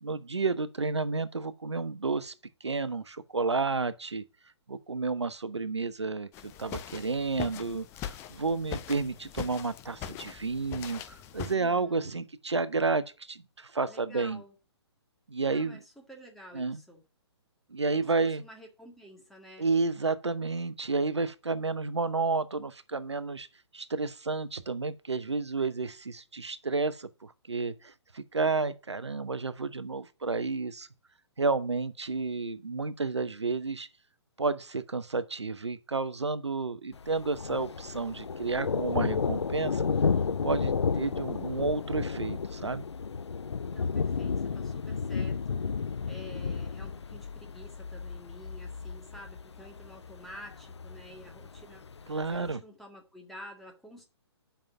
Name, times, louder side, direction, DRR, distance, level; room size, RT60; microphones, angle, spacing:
voice 1, 0.0-2.3 2.6-4.2 4.7-14.4 15.3-15.8 16.5-16.8 17.7-18.4 19.6-23.5 23.7-30.9 31.4-33.9 34.4-39.9 40.4-42.9 52.1-52.6, right 4 dB, 75° right, 0.8 m, -31 dB
sound 1, 6.3-11.5, left 9 dB, 20° left, 0.6 m, -41 dB
voice 2, 11.5-12.3 13.9-14.5 15.4-17.0 17.8-19.7 43.7-45.6 46.1-54.0, equal, ahead, 1.9 m, -50 dB
Thunder, 36.9-52.5, left 5 dB, 70° left, 0.5 m, -32 dB
7.5 x 5.7 x 7.0 m
figure-of-eight pair, 125°, 15 cm